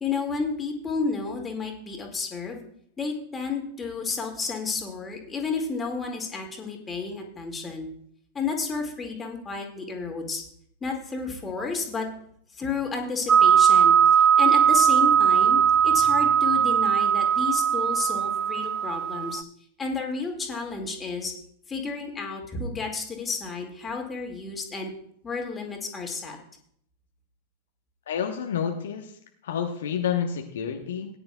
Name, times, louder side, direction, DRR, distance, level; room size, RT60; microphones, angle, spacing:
voice 1, 0.0-2.6 3.0-7.9 8.3-10.4 10.8-12.1 12.5-19.4 19.8-21.3 21.7-24.9 25.2-26.4, left 4 dB, 20° left, 2 dB, 2.1 m, -31 dB
sound 1, 13.3-19.4, right 8 dB, 20° right, 0.4 m, -19 dB
voice 2, 28.1-29.1 29.4-31.1, left 8 dB, 60° left, 3 dB, 1.0 m, -29 dB
17.5 x 9.9 x 2.3 m, 0.66 s
figure-of-eight pair, 90°, 0 cm